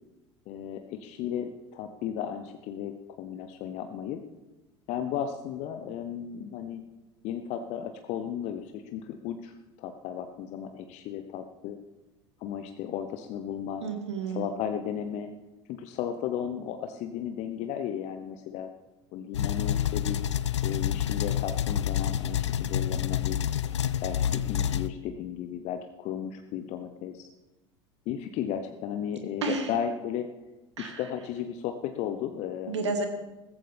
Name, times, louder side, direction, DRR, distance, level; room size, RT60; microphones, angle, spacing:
voice 1, 0.5-4.2 4.9-6.8 7.2-11.8 12.4-13.8 14.3-15.3 15.7-18.7 19.1-20.2 20.6-23.4 24.0-27.3 28.1-30.3 30.8-32.9, left 9 dB, 50° left, 7 dB, 0.9 m, -34 dB
voice 2, 13.8-14.5 29.4-29.7 30.8-31.0 32.7-33.1, right 4 dB, 80° right, 6 dB, 1.7 m, -30 dB
sound 1, 19.3-24.9, left 9 dB, 80° left, 0.4 m, -28 dB
15.5 x 14.5 x 3.4 m, 1.1 s
figure-of-eight pair, 70°, 15 cm